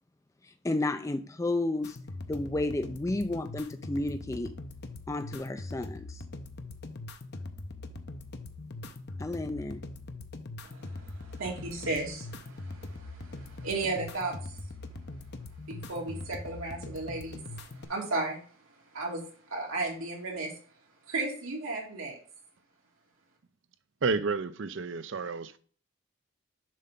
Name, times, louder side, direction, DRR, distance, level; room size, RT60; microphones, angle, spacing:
voice 1, 0.6-2.0 2.3-4.5 5.1-6.2 9.2-9.8, left 2 dB, 15° left, 0.4 m, -31 dB
sound 1, 1.8-17.8, left 2 dB, 50° left, 0.8 m, -42 dB
voice 2, 10.6-14.3 15.7-18.4 18.9-19.2 19.5-20.5 21.1-22.2, right 3 dB, 85° right, 2.4 m, -35 dB
voice 3, 24.0-25.6, right 4 dB, 60° right, 0.5 m, -30 dB
7.4 x 3.7 x 5.5 m
head